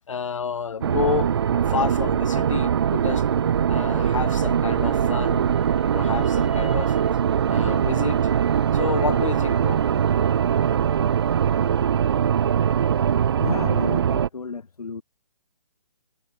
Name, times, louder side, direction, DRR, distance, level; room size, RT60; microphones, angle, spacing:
voice 1, 0.1-1.3 1.7-3.2 3.7-5.5 5.9-7.0 7.5-8.3 8.7-9.8, left 6 dB, 55° left, 2.9 m, -29 dB
sound 1, 0.8-14.3, right 8 dB, 45° right, 2.2 m, -22 dB
voice 2, 13.4-15.0, left 4 dB, 80° left, 7.0 m, -32 dB
hypercardioid pair, 165°, 19 cm